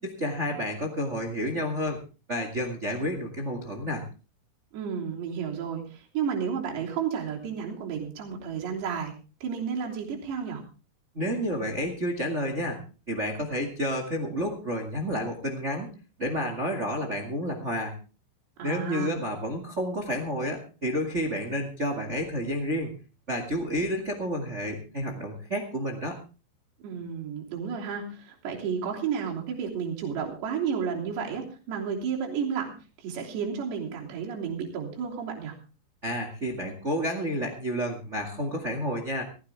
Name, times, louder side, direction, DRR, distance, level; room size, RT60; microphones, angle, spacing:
voice 1, 0.0-2.0 2.3-4.0 11.1-12.8 13.1-15.9 16.2-17.9 18.6-22.9 23.3-26.2 36.0-39.2, equal, 40° right, 4 dB, 1.0 m, -30 dB
voice 2, 4.7-9.1 9.4-10.6 18.6-19.2 26.8-35.6, right 7 dB, 65° right, -1 dB, 5.3 m, -32 dB
17.0 x 16.0 x 3.5 m, 0.34 s
omnidirectional pair, 5.4 m